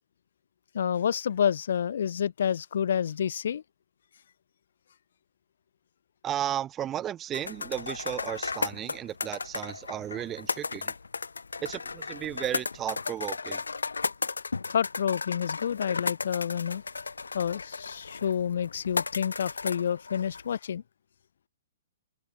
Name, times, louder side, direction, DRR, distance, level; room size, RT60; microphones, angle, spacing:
voice 1, 0.7-3.6 14.7-16.8 17.3-20.8, left 8 dB, 60° left, 2.0 m, -29 dB
voice 2, 6.2-10.9 11.6-13.6, right 11 dB, 20° right, 3.5 m, -34 dB
sound 1, 7.3-20.6, left 4 dB, 80° left, 4.2 m, -35 dB
open air
figure-of-eight pair, 120°, 0 cm